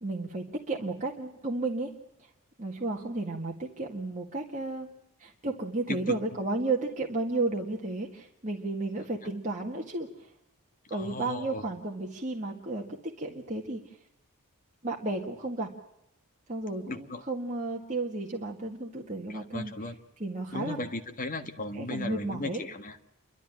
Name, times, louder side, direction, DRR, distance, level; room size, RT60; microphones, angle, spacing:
voice 1, 0.0-1.9 2.2-2.3 2.6-4.9 5.2-10.3 10.9-13.8 14.8-15.7 16.5-19.7 20.2-20.8 21.7-22.6, right 2 dB, 35° right, -1 dB, 2.0 m, -33 dB
voice 2, 10.9-11.6 16.9-17.2 19.3-20.0 20.5-23.0, left 2 dB, 40° left, 7 dB, 1.6 m, -36 dB
29.0 x 13.0 x 9.0 m, 0.83 s
head